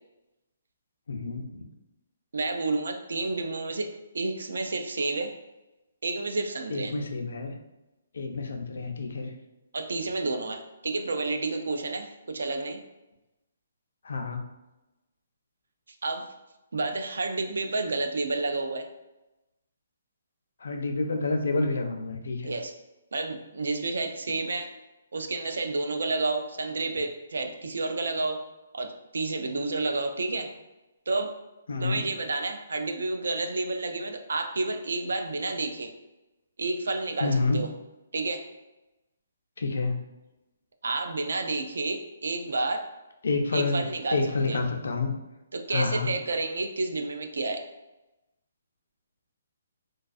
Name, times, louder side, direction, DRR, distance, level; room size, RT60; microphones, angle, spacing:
voice 1, 1.1-1.5 6.7-7.5 8.1-9.3 14.0-14.4 20.6-22.5 31.7-32.0 37.2-37.6 39.6-40.0 43.2-43.8 44.1-45.1 45.7-46.1, left 3 dB, 65° left, 4 dB, 0.4 m, -28 dB
voice 2, 2.3-5.3 6.0-6.9 9.7-12.8 16.0-16.2 16.7-18.9 22.4-22.7 23.1-24.7 25.1-28.4 28.7-30.5 31.1-31.4 31.8-35.9 36.6-37.7 38.1-38.5 40.8-42.9 43.5-44.6 45.5-47.6, right 3 dB, 85° right, 5 dB, 0.4 m, -30 dB
2.3 x 2.3 x 2.4 m, 1.0 s
hypercardioid pair, 175°, 0 cm